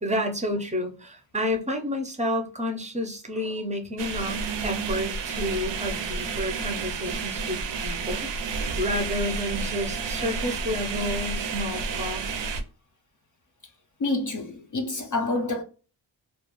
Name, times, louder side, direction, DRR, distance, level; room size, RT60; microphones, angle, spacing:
voice 1, 0.0-12.2, left 1 dB, 15° right, 0.5 m, -30 dB
sound 1, 4.0-12.6, right 4 dB, 70° right, 0.5 m, -30 dB
voice 2, 14.0-15.6, left 2 dB, 45° left, 0.5 m, -27 dB
2.3 x 2.2 x 2.9 m
wide cardioid pair, 90°, 46 cm